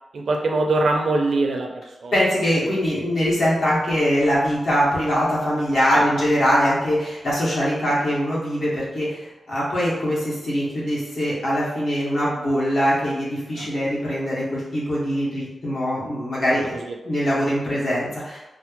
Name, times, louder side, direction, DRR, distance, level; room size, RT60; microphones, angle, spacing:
voice 1, 0.1-2.1 2.6-2.8 5.9-6.1 13.6-13.7 16.7-16.9, right 2 dB, 70° right, 2 dB, 0.5 m, -23 dB
voice 2, 2.1-16.8 17.0-18.4, equal, 60° left, -7 dB, 1.5 m, -22 dB
4.3 x 2.0 x 3.0 m, 1.0 s
wide cardioid pair, 120°, 0 cm